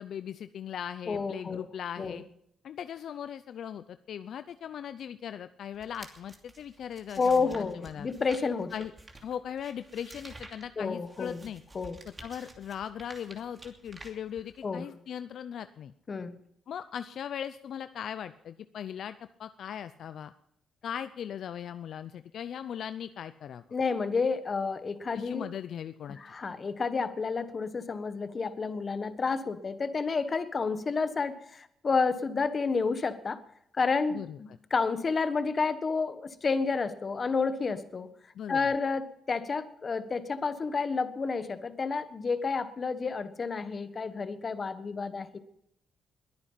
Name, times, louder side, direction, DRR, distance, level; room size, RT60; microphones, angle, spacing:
voice 1, 0.0-2.2 2.6-8.1 8.7-8.9 9.2-11.6 12.2-15.9 16.7-20.3 20.8-23.6 25.1-26.2 34.1-34.4 38.3-38.6, left 9 dB, 65° left, 12 dB, 0.6 m, -39 dB
voice 2, 1.1-1.6 2.0-2.2 7.2-8.7 10.8-11.5 11.7-12.0 14.6-14.9 16.1-16.4 23.7-25.5 26.2-33.4 33.7-38.1 38.5-45.4, left 4 dB, 35° left, 11 dB, 1.4 m, -30 dB
sound 1, 5.7-14.8, right 2 dB, 25° right, 2.7 m, -51 dB
21.5 x 9.6 x 5.8 m, 0.73 s
cardioid pair, 115°, 0 cm